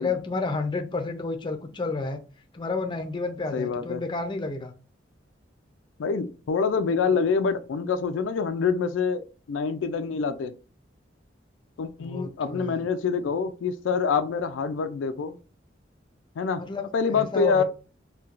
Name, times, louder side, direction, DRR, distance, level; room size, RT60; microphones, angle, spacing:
voice 1, 0.0-2.2 2.5-4.7 12.0-12.8 16.6-16.8 17.1-17.6, left 3 dB, 25° left, 0.4 m, -30 dB
voice 2, 3.5-4.0 6.0-9.2 9.5-10.5 11.8-15.4 16.4-16.6 16.9-17.6, left 5 dB, 85° left, 0.4 m, -26 dB
4.2 x 2.2 x 2.4 m
head